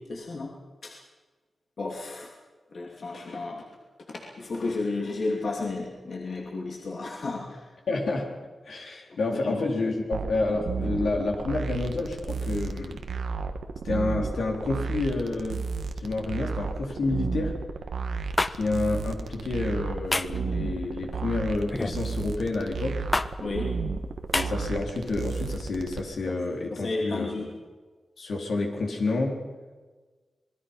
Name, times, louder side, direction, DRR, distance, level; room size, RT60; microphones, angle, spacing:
voice 1, 0.1-0.5 0.8-0.9 1.8-2.3 2.7-3.6 4.1-7.6 9.3-9.7 23.4-23.7 26.3-26.4 26.7-27.5, left 3 dB, 60° left, -1 dB, 2.8 m, -32 dB
voice 2, 7.9-8.4 8.7-13.0 13.8-15.6 16.0-17.6 18.6-23.1 24.3-27.3 28.2-29.4, left 3 dB, 80° left, 0 dB, 4.0 m, -29 dB
sound 1, 10.1-26.0, right 4 dB, 85° right, 1.4 m, -33 dB
sound 2, 18.4-18.5 20.1-20.4 21.7-22.0 23.1-23.3 24.3-24.5, left 2 dB, 25° left, 0.7 m, -26 dB
26.5 x 20.5 x 5.6 m, 1.3 s
wide cardioid pair, 105°, 0 cm